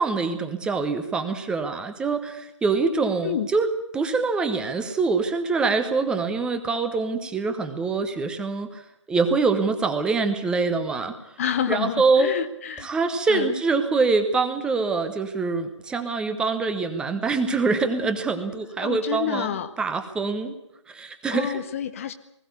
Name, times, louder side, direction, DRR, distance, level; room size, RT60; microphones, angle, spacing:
voice 1, 0.0-3.7 3.9-8.8 9.1-11.1 11.7-12.3 12.8-20.5 20.9-21.6, right 4 dB, 5° right, 8 dB, 0.9 m, -24 dB
voice 2, 11.4-12.9 13.3-13.6 18.8-19.8 21.3-22.1, left 9 dB, 30° left, 11 dB, 0.8 m, -28 dB
20.0 x 15.5 x 9.5 m, 0.80 s
figure-of-eight pair, 145°, 16 cm